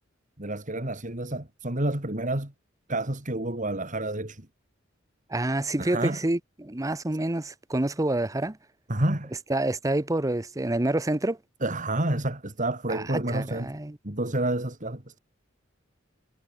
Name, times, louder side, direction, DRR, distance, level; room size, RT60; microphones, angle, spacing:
voice 1, 0.4-2.5 2.9-4.5 5.8-6.2 8.9-9.3 11.6-13.7 14.0-15.2, right 1 dB, 40° right, 3.2 m, -29 dB
voice 2, 5.3-8.6 9.5-11.4 12.9-14.0, right 1 dB, 15° right, 0.8 m, -27 dB
head